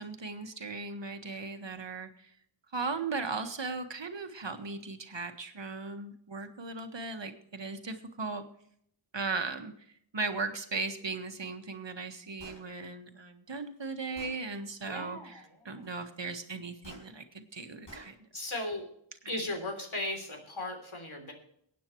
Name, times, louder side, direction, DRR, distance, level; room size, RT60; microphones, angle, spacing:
voice 1, 0.0-2.3 2.7-8.4 9.1-18.2, right 4 dB, 65° right, 6 dB, 1.6 m, -37 dB
Gunshot gunfire, 12.4-12.6 13.5-13.6 14.2-14.4 16.8-17.1 17.9-18.1, left 1 dB, 65° left, 6.0 m, -49 dB
voice 2, 14.9-15.9 18.3-18.9 19.3-21.3, left 1 dB, 90° left, 3 dB, 3.4 m, -37 dB
23.0 x 9.3 x 3.1 m, 0.69 s
wide cardioid pair, 50°, 47 cm